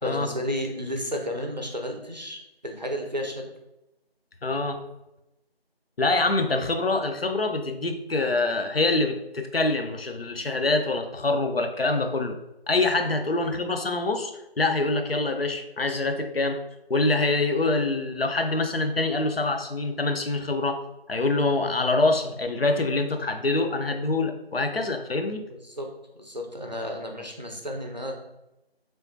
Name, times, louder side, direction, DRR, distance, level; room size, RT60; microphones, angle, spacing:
voice 1, 0.0-3.4 25.5-25.9 26.1-28.1, equal, 45° right, 2 dB, 0.5 m, -32 dB
voice 2, 4.4-4.8 6.0-12.4 12.7-16.6 16.9-20.8 21.1-25.4, left 2 dB, 70° left, 6 dB, 0.5 m, -25 dB
3.4 x 3.0 x 2.6 m, 0.90 s
figure-of-eight pair, 175°, 31 cm